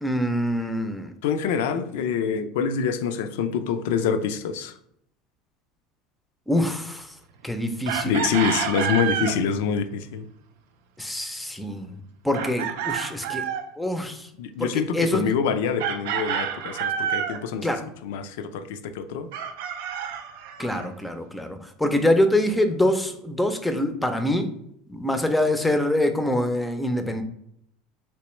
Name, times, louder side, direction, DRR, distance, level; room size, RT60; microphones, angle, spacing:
voice 1, 0.0-1.1 6.5-7.1 7.4-8.2 11.0-11.9 12.2-13.5 13.8-14.3 14.6-15.2 17.6-17.9 20.6-24.5 24.9-27.2, left 1 dB, 5° left, 7 dB, 0.5 m, -25 dB
voice 2, 1.2-4.7 8.1-10.2 14.4-17.7 18.0-19.3, left 6 dB, 80° left, 10 dB, 0.3 m, -26 dB
Chicken rooster, 7.9-9.4 12.3-13.7 15.8-17.4 19.3-20.9, right 8 dB, 80° right, 0.4 m, -28 dB
3.2 x 2.9 x 3.0 m, 0.74 s
supercardioid pair, 105°, 0 cm